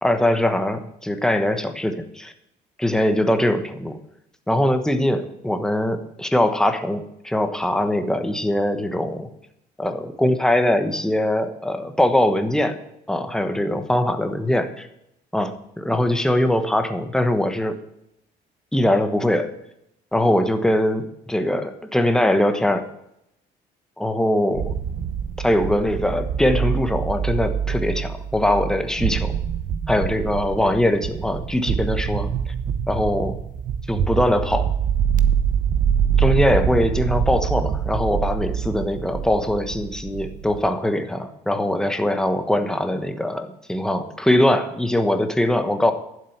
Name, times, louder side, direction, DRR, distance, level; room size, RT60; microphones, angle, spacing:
voice 1, 0.0-2.3 2.8-4.0 4.5-9.3 9.8-12.8 13.1-14.9 15.3-15.5 15.8-17.8 18.7-19.5 20.1-22.8 24.0-24.7 25.4-29.4 29.9-32.3 32.9-33.4 33.9-34.7 36.2-45.9, left 1 dB, 5° left, 7 dB, 1.1 m, -21 dB
sound 1, 24.5-40.7, right 8 dB, 50° right, 0.9 m, -25 dB
11.5 x 7.6 x 5.9 m, 0.81 s
cardioid pair, 110°, 17 cm